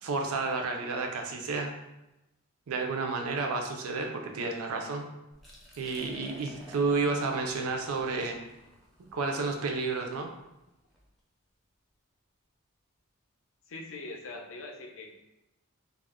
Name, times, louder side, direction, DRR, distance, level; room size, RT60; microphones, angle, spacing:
voice 1, 0.0-1.7 2.7-5.1 5.8-8.4 9.1-10.3, right 4 dB, 75° right, 3 dB, 0.4 m, -31 dB
Liquid, 5.3-11.1, equal, ahead, 0.5 m, -53 dB
voice 2, 13.7-15.2, left 2 dB, 65° left, 1 dB, 0.5 m, -42 dB
2.4 x 2.0 x 3.5 m, 0.95 s
head